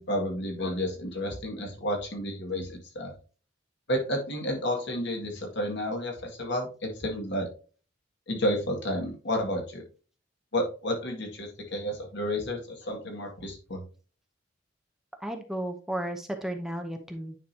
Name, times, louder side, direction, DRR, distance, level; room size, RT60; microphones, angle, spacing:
voice 1, 0.0-3.1 3.9-7.5 8.3-9.8 10.5-13.8, equal, 65° left, 1 dB, 2.0 m, -31 dB
voice 2, 15.2-17.4, right 1 dB, ahead, 4 dB, 0.7 m, -34 dB
9.4 x 5.0 x 2.7 m, 0.38 s
head